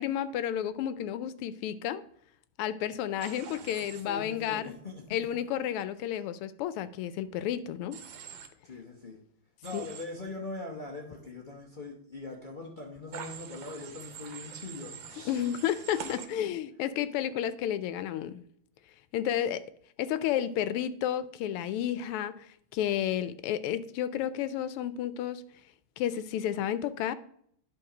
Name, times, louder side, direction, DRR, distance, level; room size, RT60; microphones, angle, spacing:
voice 1, 0.0-2.0 2.6-4.7 5.1-8.0 9.7-9.9 15.2-18.4 19.1-19.6 20.0-22.5 22.7-25.4 26.0-27.1, left 10 dB, 85° left, 1.5 m, -31 dB
Human voice / Train, 3.2-4.0 7.9-8.5 9.6-10.0 13.1-16.3, right 7 dB, 65° right, 1.6 m, -44 dB
voice 2, 3.5-5.0 8.6-9.2 9.6-15.5, left 2 dB, 50° left, 0.6 m, -42 dB
10.5 x 3.8 x 4.9 m
omnidirectional pair, 2.4 m